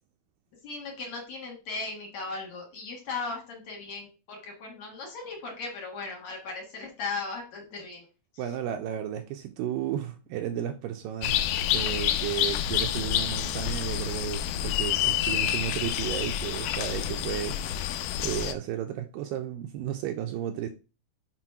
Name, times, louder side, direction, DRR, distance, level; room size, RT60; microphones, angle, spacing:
voice 1, 0.6-8.1 8.3-8.5, left 4 dB, 55° left, 2.4 m, -37 dB
voice 2, 8.4-11.4 11.7-17.6 18.2-20.7, right 10 dB, 80° right, 2.1 m, -33 dB
sound 1, 11.2-18.5, left 11 dB, 90° left, 1.9 m, -28 dB
6.1 x 4.2 x 5.6 m
omnidirectional pair, 4.4 m